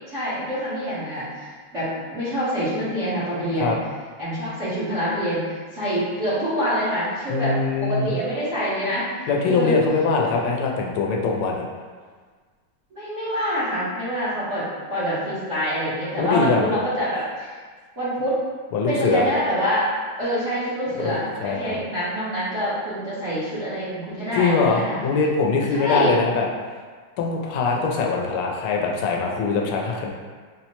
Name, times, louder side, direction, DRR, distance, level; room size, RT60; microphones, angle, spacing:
voice 1, 0.1-3.7 4.2-9.1 9.4-9.8 12.9-17.5 18.0-18.4 18.9-19.9 20.2-25.0 25.7-26.1, equal, 45° right, -12 dB, 1.0 m, -26 dB
voice 2, 7.3-8.1 9.3-11.6 16.2-16.7 18.7-19.3 21.0-21.8 24.3-26.5 27.2-30.1, left 4 dB, 90° left, 0 dB, 1.5 m, -22 dB
4.2 x 2.1 x 2.9 m, 1.5 s
omnidirectional pair, 2.3 m